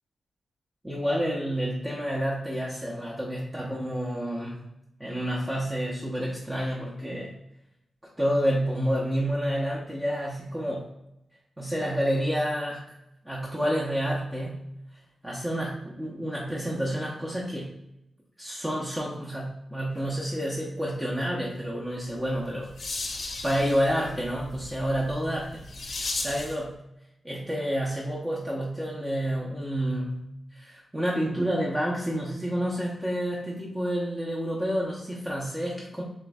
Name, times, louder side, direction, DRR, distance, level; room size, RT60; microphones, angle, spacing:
voice 1, 0.8-4.6 5.0-7.4 8.2-10.9 11.6-12.9 13.2-14.7 15.2-17.8 18.4-22.7 23.4-25.6 26.0-26.8 27.2-36.0, equal, 15° right, -5 dB, 0.7 m, -29 dB
sound 1, 22.2-26.6, left 2 dB, 60° left, 0.8 m, -36 dB
7.4 x 2.5 x 2.3 m, 0.85 s
wide cardioid pair, 115°, 0 cm